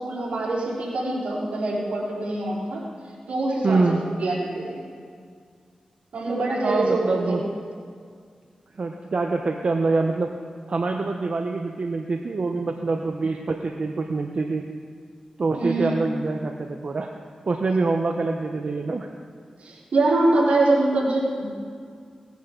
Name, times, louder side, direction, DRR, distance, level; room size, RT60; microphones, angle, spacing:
voice 1, 0.0-2.8 3.3-4.8 6.1-7.4 15.6-16.0 19.6-21.5, right 2 dB, 85° right, -6 dB, 4.1 m, -24 dB
voice 2, 3.6-4.0 6.6-7.4 8.8-10.3 10.7-14.6 15.4-17.1 17.5-19.1, right 3 dB, 60° right, 3 dB, 0.8 m, -25 dB
18.5 x 10.5 x 3.9 m, 2.1 s
cardioid pair, 55°, 2 cm